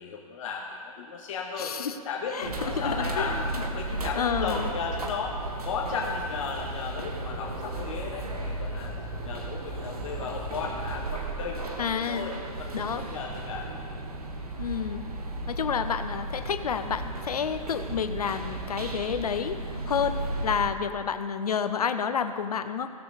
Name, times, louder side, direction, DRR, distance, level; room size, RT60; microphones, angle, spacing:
voice 1, 0.0-3.4 3.7-8.9 9.2-12.7 13.0-13.7, left 5 dB, 60° left, -1 dB, 1.5 m, -35 dB
voice 2, 1.6-2.0 2.3-3.3 4.1-4.7 11.8-12.3 12.7-13.0 14.6-15.0 15.5-22.9, left 7 dB, 85° left, 10 dB, 0.8 m, -30 dB
sound 1, 2.4-20.7, right 2 dB, 90° right, 1.4 m, -35 dB
17.0 x 6.8 x 4.0 m, 2.1 s
hypercardioid pair, 130°, 19 cm